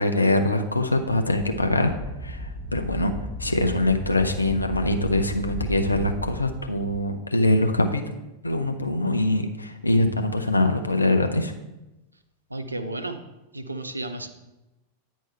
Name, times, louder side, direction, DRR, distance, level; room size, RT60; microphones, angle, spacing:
voice 1, 0.0-1.9 2.2-3.1 3.4-8.0 8.4-11.5, left 2 dB, 80° left, 5 dB, 0.7 m, -23 dB
Wind, 0.8-7.0, right 1 dB, 25° right, 1.0 m, -36 dB
voice 2, 12.5-13.2 13.5-14.3, right 2 dB, 80° right, 8 dB, 0.6 m, -32 dB
9.4 x 4.6 x 4.4 m, 0.99 s
figure-of-eight pair, 90°, 0 cm